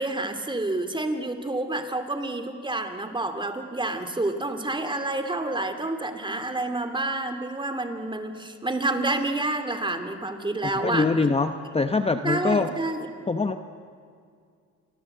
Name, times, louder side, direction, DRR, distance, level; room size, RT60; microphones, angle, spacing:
voice 1, 0.0-11.1 12.2-13.1, right 2 dB, 15° right, 7 dB, 2.6 m, -28 dB
voice 2, 10.8-12.7 13.3-13.6, left 4 dB, 20° left, 8 dB, 0.9 m, -23 dB
28.5 x 24.0 x 7.9 m, 2.3 s
cardioid pair, 90°, 30 cm